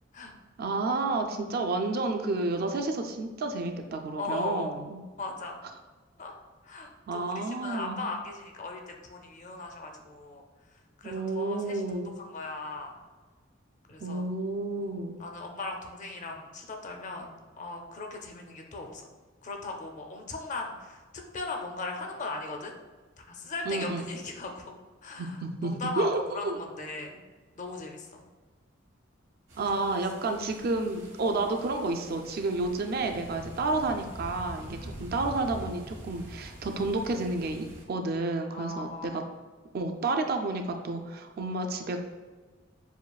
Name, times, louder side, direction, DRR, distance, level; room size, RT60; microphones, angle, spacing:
voice 1, 0.6-5.0 7.1-8.1 11.0-12.1 14.0-15.2 23.7-24.1 25.2-26.6 29.6-39.2 39.7-42.0, right 2 dB, 50° right, 5 dB, 0.4 m, -30 dB
voice 2, 4.2-4.7 5.2-5.6 6.2-6.3 6.6-10.4 10.7-13.0 13.9-14.3 14.8-19.0 19.4-22.7 23.2-24.7 25.0-26.1 26.3-27.2 27.6-28.2 29.6-29.8 38.5-39.3, left 3 dB, 40° left, 2 dB, 0.5 m, -38 dB
sound 1, 29.5-37.8, right 1 dB, 75° right, 1.4 m, -45 dB
7.0 x 2.4 x 2.3 m, 1.4 s
head